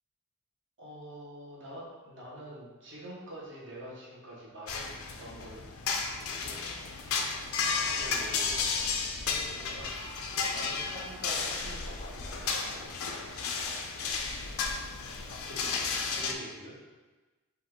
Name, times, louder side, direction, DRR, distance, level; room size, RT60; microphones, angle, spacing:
voice 1, 0.8-4.9 5.2-5.6 6.1-6.6 6.9-7.2 7.8-8.7 9.1-13.2 14.4-14.6 15.2-17.0, equal, 60° right, -5 dB, 1.3 m, -46 dB
sound 1, 4.7-16.3, left 5 dB, 70° left, 0.5 m, -33 dB
5.3 x 2.5 x 3.7 m, 1.2 s
head